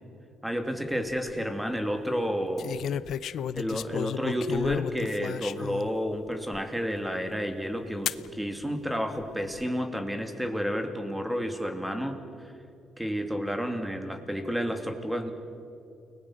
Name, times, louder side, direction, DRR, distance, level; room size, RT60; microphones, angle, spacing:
voice 1, 0.4-2.9 3.5-12.5 13.0-15.3, equal, 5° right, 5 dB, 2.8 m, -31 dB
sound 1, 0.9-1.3 2.6-5.9 6.5-6.6 8.1-8.3 9.2-9.6, left 9 dB, 70° left, 0.6 m, -33 dB
29.5 x 20.0 x 6.4 m, 2.6 s
cardioid pair, 90°, 0 cm